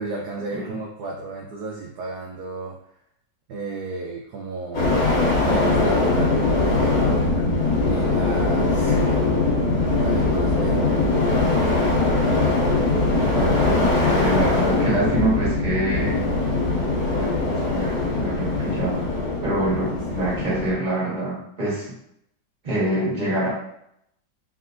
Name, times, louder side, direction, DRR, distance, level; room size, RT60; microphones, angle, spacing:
voice 1, 0.0-2.8 3.5-5.1 5.4-7.5 7.8-11.0 19.7-19.8 20.1-20.2, right 3 dB, 70° right, -1 dB, 1.1 m, -33 dB
sound 1, 4.7-20.7, left 2 dB, 60° left, 1.6 m, -21 dB
voice 2, 8.6-9.1 13.3-16.2 17.0-19.1 19.4-22.0 22.6-23.5, right 1 dB, 25° right, -7 dB, 1.7 m, -26 dB
4.1 x 3.7 x 2.5 m, 0.74 s
omnidirectional pair, 1.9 m